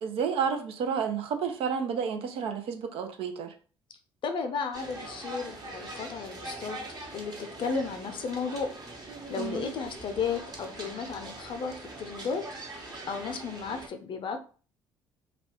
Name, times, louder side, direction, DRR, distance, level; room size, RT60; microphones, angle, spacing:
voice 1, 0.0-3.5 9.4-9.7, right 6 dB, 60° right, 6 dB, 0.5 m, -31 dB
voice 2, 4.2-6.8 7.1-8.7 9.3-12.4 13.1-14.4, left 5 dB, 50° left, 6 dB, 0.6 m, -34 dB
sound 1, 4.7-13.9, right 2 dB, 35° right, 1.1 m, -42 dB
2.4 x 2.3 x 3.6 m, 0.39 s
hypercardioid pair, 55°, 11 cm